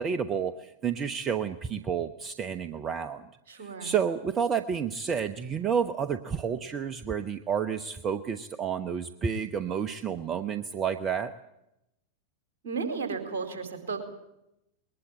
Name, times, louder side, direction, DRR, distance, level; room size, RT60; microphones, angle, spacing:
voice 1, 0.0-3.2 3.6-11.3, right 7 dB, 25° right, 12 dB, 0.9 m, -30 dB
voice 2, 3.5-3.9 12.6-14.0, right 5 dB, 60° right, 8 dB, 4.5 m, -34 dB
21.5 x 20.0 x 8.8 m, 0.86 s
figure-of-eight pair, 90°, 0 cm